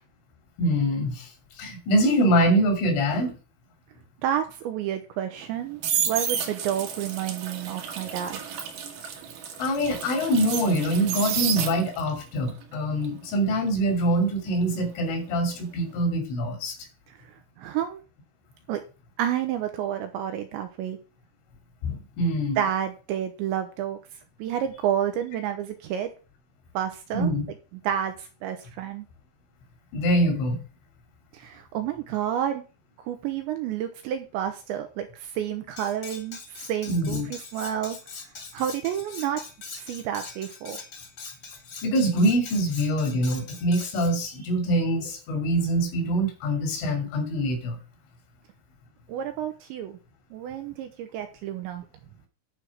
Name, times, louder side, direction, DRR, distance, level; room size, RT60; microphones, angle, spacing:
voice 1, 0.6-1.3 1.6-3.4 9.6-16.8 21.8-22.6 27.1-27.5 29.9-30.6 36.9-37.3 41.8-47.8, right 1 dB, 70° left, 3 dB, 5.2 m, -24 dB
voice 2, 4.2-5.8 6.1-8.4 17.1-17.2 17.6-18.0 18.7-18.8 19.2-21.0 22.6-24.0 24.4-26.1 26.7-27.3 27.7-29.1 31.3-32.6 33.0-38.0 38.5-39.4 39.8-40.8 49.1-50.0 50.3-51.9, right 10 dB, 80° right, 7 dB, 2.8 m, -30 dB
sound 1, 5.4-12.1 12.5-15.4 15.6-16.0, right 8 dB, 65° right, 2.2 m, -31 dB
Cutlery silverware, 35.8-44.1, left 4 dB, 35° left, 1.9 m, -42 dB
11.5 x 4.7 x 6.1 m, 0.34 s
omnidirectional pair, 5.8 m